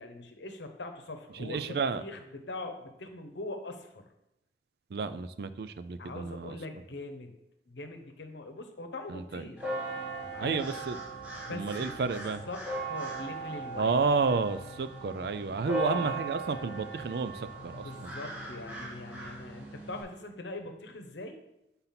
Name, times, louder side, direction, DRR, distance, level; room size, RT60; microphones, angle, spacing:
voice 1, 0.0-4.1 6.0-7.3 7.7-9.7 10.3-10.6 11.4-12.0 12.5-14.0 15.6-16.2 17.7-21.4, left 2 dB, 75° left, 6 dB, 0.9 m, -41 dB
voice 2, 1.4-2.0 4.9-6.6 9.1-9.4 10.4-11.0 11.5-12.4 13.8-18.1, right 4 dB, 60° right, 12 dB, 0.4 m, -31 dB
sound 1, 9.6-20.0, right 2 dB, 10° right, 1.8 m, -39 dB
5.8 x 4.0 x 5.8 m, 0.88 s
head